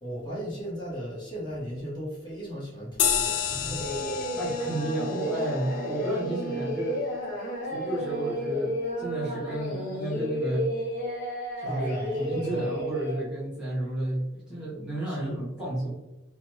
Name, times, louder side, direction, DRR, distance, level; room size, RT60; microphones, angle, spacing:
voice 1, 0.0-3.9 11.6-12.8 15.0-15.4, equal, 25° left, -6 dB, 1.2 m, -36 dB
sound 1, 3.0-7.9, left 8 dB, 75° left, 0.4 m, -32 dB
sound 2, 3.4-5.0, equal, 30° right, 0.8 m, -46 dB
Singing, 3.8-13.2, equal, 50° left, 1.2 m, -32 dB
voice 2, 4.3-7.0 7.6-10.7 11.6-15.9, right 1 dB, 5° right, -8 dB, 0.9 m, -32 dB
3.0 x 2.2 x 3.0 m, 0.97 s
head